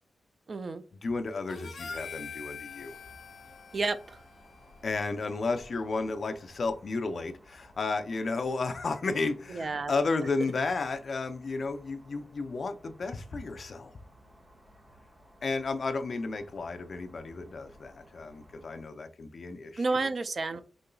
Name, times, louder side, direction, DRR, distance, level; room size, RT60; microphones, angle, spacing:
voice 1, 0.5-0.8 3.7-4.2 9.5-9.9 19.8-20.6, right 3 dB, 45° right, 0.4 m, -30 dB
voice 2, 1.0-2.9 4.8-13.9 15.4-20.1, left 3 dB, 50° left, 0.5 m, -33 dB
Harmonica, 1.5-6.0, left 5 dB, 65° left, 1.0 m, -45 dB
sound 1, 2.7-18.8, equal, 20° right, 1.5 m, -58 dB
5.1 x 3.8 x 2.3 m
wide cardioid pair, 125°, 0 cm